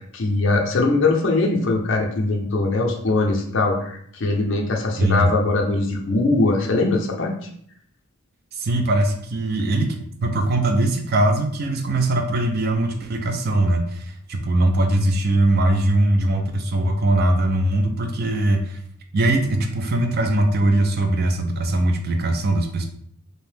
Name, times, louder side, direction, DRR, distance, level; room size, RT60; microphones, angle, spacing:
voice 1, 0.1-7.3, left 2 dB, 55° left, 1 dB, 0.5 m, -21 dB
voice 2, 5.0-5.3 8.5-18.8 19.1-22.9, right 1 dB, 45° right, 4 dB, 0.3 m, -21 dB
2.7 x 2.0 x 3.2 m, 0.65 s
head